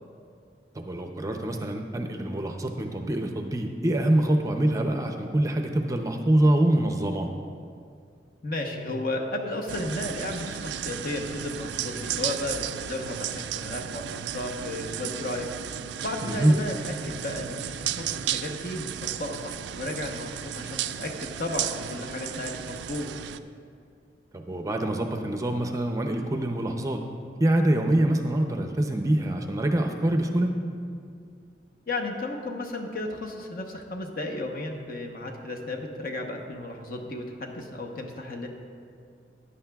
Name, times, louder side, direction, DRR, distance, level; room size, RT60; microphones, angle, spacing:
voice 1, 0.7-7.3 16.2-16.6 24.3-27.0 27.4-30.5, right 1 dB, 20° right, 4 dB, 0.5 m, -25 dB
voice 2, 8.4-15.5 16.0-23.1 31.9-38.5, left 1 dB, 55° left, 2 dB, 0.9 m, -34 dB
sound 1, 9.7-23.4, right 10 dB, 75° right, 0.3 m, -34 dB
14.5 x 9.8 x 2.3 m, 2.3 s
head